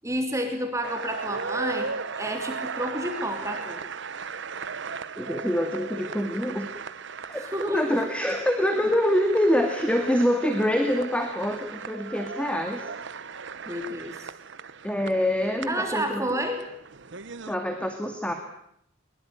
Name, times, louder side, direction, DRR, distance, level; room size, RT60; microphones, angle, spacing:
voice 1, 0.0-1.9 2.2-3.8 7.4-8.0 13.7-14.3 15.7-16.6, right 1 dB, 15° right, 4 dB, 3.1 m, -30 dB
sound 1, 0.8-17.6, right 5 dB, 70° right, 1.1 m, -37 dB
voice 2, 5.2-6.7 7.3-12.9 14.8-16.4 17.5-18.3, equal, 5° left, 5 dB, 2.2 m, -25 dB
22.5 x 22.0 x 9.0 m, 0.72 s
head